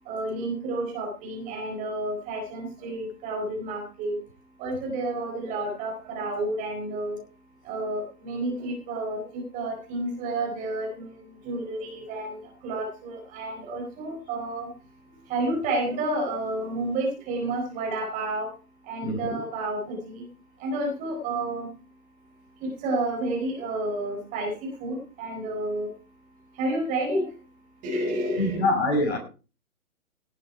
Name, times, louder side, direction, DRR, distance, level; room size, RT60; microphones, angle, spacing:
voice 1, 0.1-4.1 4.6-7.2 7.7-11.1 11.4-14.7 15.3-18.5 18.9-20.2 20.6-21.7 22.6-24.5 24.8-25.9 26.6-27.2 27.8-28.7, right 2 dB, 20° right, 0 dB, 4.5 m, -30 dB
voice 2, 19.0-19.4 28.4-29.2, left 2 dB, 50° left, 5 dB, 6.2 m, -25 dB
17.0 x 9.3 x 4.6 m, 0.35 s
figure-of-eight pair, 135°, 43 cm